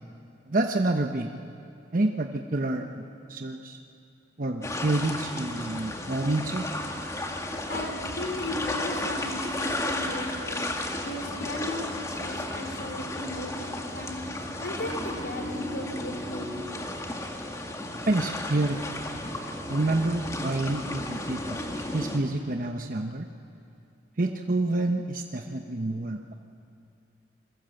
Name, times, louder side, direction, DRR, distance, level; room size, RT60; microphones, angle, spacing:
voice 1, 0.5-1.3 1.9-3.0 3.3-3.8 4.4-6.7 18.1-18.8 19.7-23.3 24.2-26.3, right 2 dB, 50° right, 4 dB, 0.9 m, -28 dB
sound 1, 4.6-22.2, left 1 dB, 15° left, 1.8 m, -34 dB
voice 2, 7.7-10.6 11.0-14.3 14.6-16.8, left 1 dB, 70° left, 3 dB, 4.2 m, -36 dB
28.5 x 22.0 x 7.8 m, 2.6 s
head